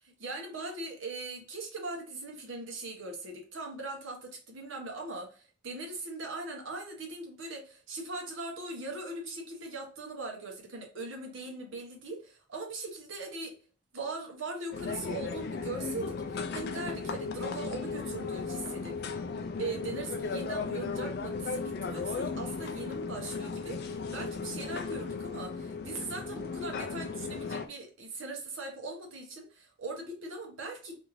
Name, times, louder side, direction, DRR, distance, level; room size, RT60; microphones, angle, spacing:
voice 1, 0.2-13.5 13.9-19.2 19.6-30.9, right 2 dB, 75° right, 1 dB, 0.9 m, -40 dB
sound 1, 14.7-27.7, left 4 dB, 50° left, 0.3 m, -36 dB
2.7 x 2.5 x 3.0 m, 0.38 s
head